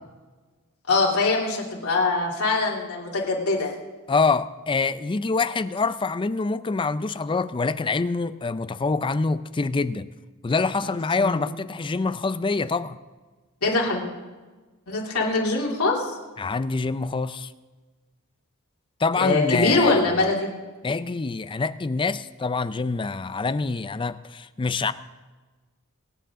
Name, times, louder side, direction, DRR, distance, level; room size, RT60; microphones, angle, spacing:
voice 1, 0.9-3.7 10.8-10.9 11.2-11.4 13.6-14.0 14.9-16.1 19.2-20.5, left 3 dB, 85° left, 3.0 m, -23 dB
voice 2, 4.1-10.1 10.4-13.0 16.4-17.5 19.0-20.0 20.8-24.9, left 4 dB, 25° left, 0.4 m, -25 dB
24.5 x 9.2 x 3.7 m
head